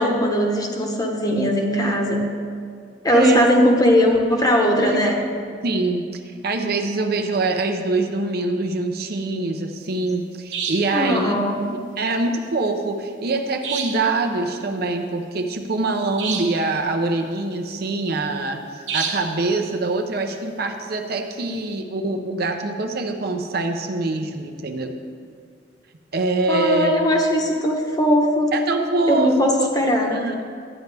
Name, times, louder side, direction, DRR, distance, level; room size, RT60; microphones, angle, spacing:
voice 1, 0.0-2.3 3.0-5.2 10.9-11.6 26.5-28.5 29.1-30.2, equal, 20° left, 1 dB, 1.0 m, -19 dB
voice 2, 3.1-3.5 4.8-5.2 5.6-11.4 12.0-25.0 26.1-26.9 28.5-29.7 30.1-30.5, right 2 dB, 60° right, 5 dB, 0.7 m, -24 dB
sound 1, 10.5-11.0 13.6-14.1 16.2-16.7 18.9-19.4, right 6 dB, 75° right, 1.1 m, -28 dB
12.0 x 9.3 x 3.4 m, 2.2 s
head